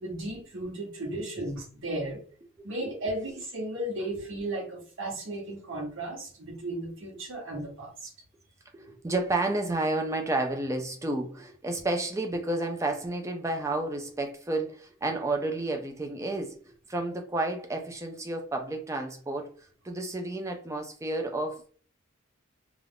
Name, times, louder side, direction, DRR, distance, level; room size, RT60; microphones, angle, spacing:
voice 1, 0.0-2.2 2.6-8.1, right 1 dB, 60° right, 0.9 m, -35 dB
voice 2, 8.7-19.5 19.8-21.7, right 2 dB, 15° right, 0.4 m, -31 dB
2.4 x 2.3 x 3.4 m
head